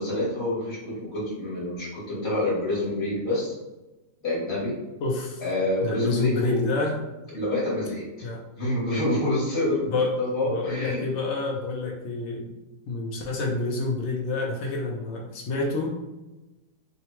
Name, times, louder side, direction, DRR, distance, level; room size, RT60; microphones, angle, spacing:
voice 1, 0.0-3.5 4.2-4.7 5.4-6.7 7.3-8.3 8.6-11.1, left 1 dB, 45° left, -9 dB, 1.2 m, -27 dB
voice 2, 5.0-5.4 5.8-7.0 8.2-8.4 9.9-10.2 10.4-12.5 12.9-16.0, left 3 dB, 80° left, 0 dB, 0.6 m, -28 dB
3.6 x 2.1 x 2.9 m, 1.0 s
omnidirectional pair, 1.7 m